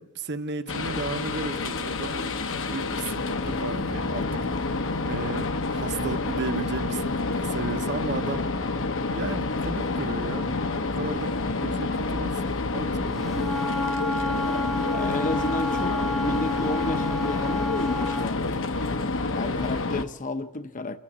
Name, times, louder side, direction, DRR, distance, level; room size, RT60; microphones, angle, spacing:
voice 1, 0.0-4.7 5.0-8.5 9.1-10.5 10.8-11.3 11.6-13.5, right 3 dB, 50° right, 1.0 m, -34 dB
sound 1, 0.7-20.0, left 3 dB, 60° left, 0.9 m, -28 dB
Wind instrument woodwind instrument, 13.2-18.3, left 2 dB, ahead, 0.8 m, -29 dB
voice 2, 14.9-18.6 19.3-21.0, left 2 dB, 35° left, 0.7 m, -32 dB
27.5 x 13.0 x 8.6 m
head